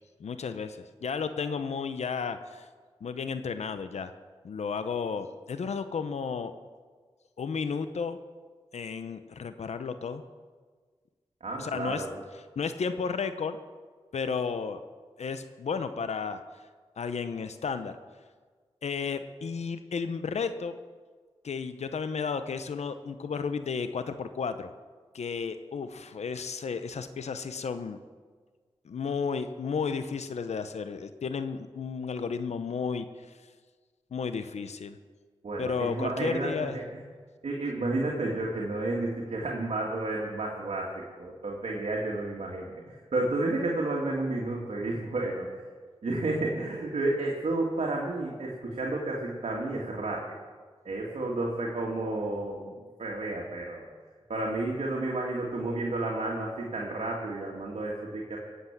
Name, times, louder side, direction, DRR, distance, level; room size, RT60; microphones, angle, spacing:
voice 1, 0.2-2.7 3.0-4.1 4.4-6.5 7.4-8.2 8.7-10.2 11.6-12.0 12.6-13.6 14.1-14.8 15.2-16.4 17.0-17.9 18.8-20.7 21.4-24.7 25.1-28.0 28.8-33.1 34.1-35.0 35.6-36.8, left 5 dB, 85° left, 10 dB, 0.8 m, -33 dB
voice 2, 11.4-12.2 35.4-36.8 37.4-45.6 46.0-50.2 50.8-53.9 54.3-58.4, right 2 dB, 75° right, -2 dB, 2.2 m, -31 dB
18.5 x 8.1 x 7.4 m, 1.5 s
cardioid pair, 45°, 11 cm